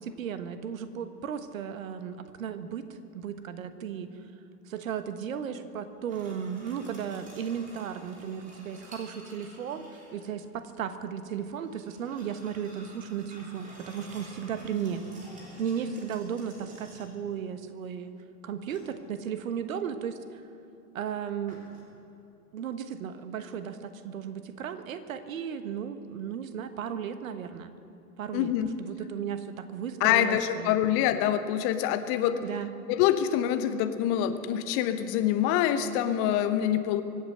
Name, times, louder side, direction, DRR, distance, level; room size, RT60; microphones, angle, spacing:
voice 1, 0.0-2.8 3.1-4.1 4.7-9.8 10.1-15.0 15.6-18.1 18.4-20.4 20.9-21.6 22.5-27.7 28.2-28.5 28.8-30.8 32.4-32.7, right 8 dB, 55° right, 11 dB, 1.3 m, -35 dB
sound 1, 6.1-10.3 11.5-17.3 18.7-19.3 21.5-21.8, right 1 dB, 15° right, 3.4 m, -51 dB
voice 2, 28.3-28.7 30.0-32.4 32.9-37.0, left 11 dB, 30° left, 10 dB, 0.9 m, -25 dB
24.0 x 8.4 x 6.5 m, 2.8 s
figure-of-eight pair, 105°, 48 cm